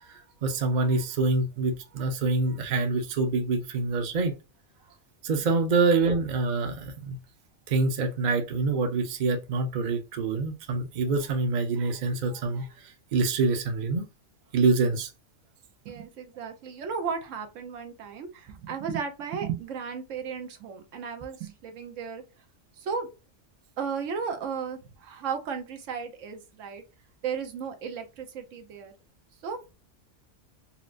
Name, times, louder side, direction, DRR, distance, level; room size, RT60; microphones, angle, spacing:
voice 1, 0.1-4.3 5.2-7.2 7.7-14.1 14.5-15.1, right 3 dB, 45° right, 0.6 m, -26 dB
voice 2, 15.8-22.2 22.8-23.1 23.8-26.8 27.2-28.9 29.4-29.6, right 6 dB, 80° right, 1.1 m, -34 dB
4.3 x 2.0 x 2.5 m
omnidirectional pair, 1.3 m